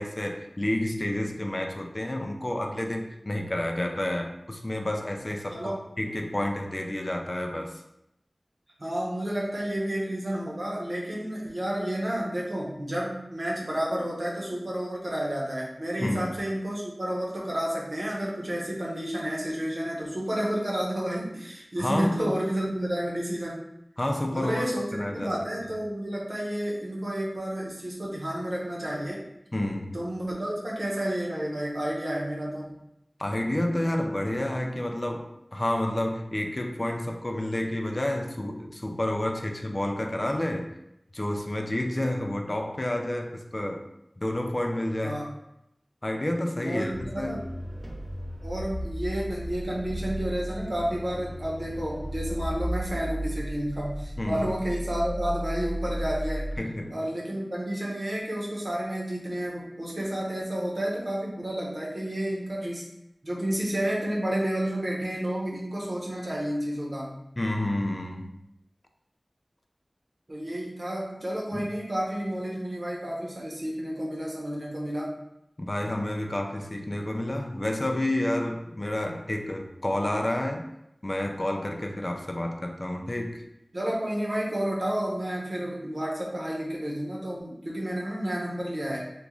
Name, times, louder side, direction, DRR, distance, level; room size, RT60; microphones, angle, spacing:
voice 1, 0.0-7.8 16.0-16.4 21.8-22.4 24.0-25.3 29.5-30.0 33.2-40.8 41.1-43.9 44.2-45.2 46.0-47.4 54.2-54.5 56.6-57.0 67.4-68.4 71.5-71.7 75.6-80.7 81.0-83.5, left 1 dB, 40° left, 3 dB, 0.4 m, -30 dB
voice 2, 8.8-23.6 24.3-29.2 29.9-32.8 45.0-45.3 46.6-47.4 48.4-56.5 56.9-62.9 63.2-67.2 70.3-75.2 83.7-89.0, right 1 dB, 70° right, -4 dB, 0.9 m, -31 dB
sound 1, 46.9-56.6, equal, 45° right, 1.0 m, -34 dB
3.0 x 2.4 x 3.6 m, 0.84 s
wide cardioid pair, 55°, 0 cm